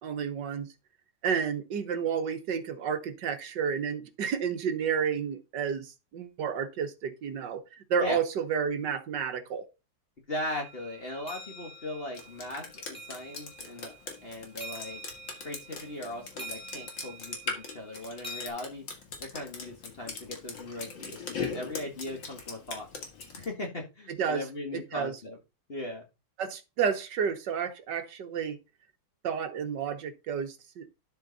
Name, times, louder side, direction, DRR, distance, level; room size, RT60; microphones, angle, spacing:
voice 1, 0.0-0.7 1.2-7.6 7.9-9.7 24.1-24.4 24.7-25.1 26.4-28.6 29.2-30.8, right 7 dB, 70° right, 1.8 m, -31 dB
voice 2, 10.3-13.9 14.2-15.0 15.4-18.8 19.2-22.9 23.4-25.4 25.7-26.0, left 1 dB, 35° left, 1.7 m, -38 dB
sound 1, 10.5-18.5, right 1 dB, 5° left, 1.9 m, -47 dB
Drip, 12.1-23.4, left 5 dB, 75° left, 2.7 m, -40 dB
11.5 x 4.7 x 4.0 m
omnidirectional pair, 2.0 m